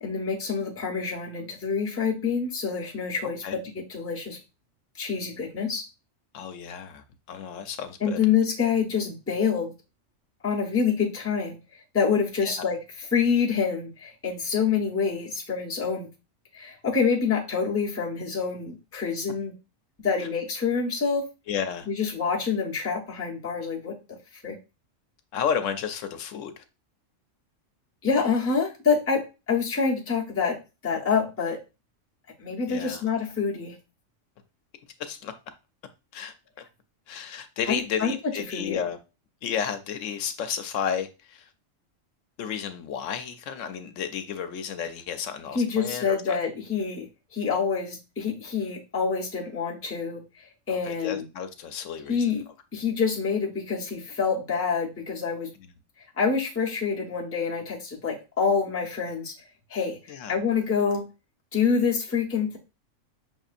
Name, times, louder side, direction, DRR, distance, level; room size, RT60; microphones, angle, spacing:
voice 1, 0.0-3.6 3.9-4.4 4.9-5.8 8.0-9.7 10.4-11.6 11.9-12.8 13.1-16.1 16.5-19.5 20.0-21.3 21.9-23.9 24.3-24.6 28.0-30.6 30.8-31.6 32.4-33.8 37.7-38.1 38.5-38.8 45.5-47.1 47.3-51.2 52.1-52.4 52.7-55.5 56.2-59.3 59.7-61.1 61.5-62.6, left 6 dB, 15° left, 0.7 m, -26 dB
voice 2, 6.3-8.2 12.4-12.5 20.2-20.3 21.5-21.9 25.3-26.6 32.7-33.0 35.0-35.3 36.1-36.3 37.1-39.0 39.4-41.5 42.4-46.4 50.7-52.3 55.6-55.7 60.1-60.4, left 8 dB, 80° left, 0.9 m, -32 dB
5.9 x 2.7 x 2.4 m
omnidirectional pair, 1.3 m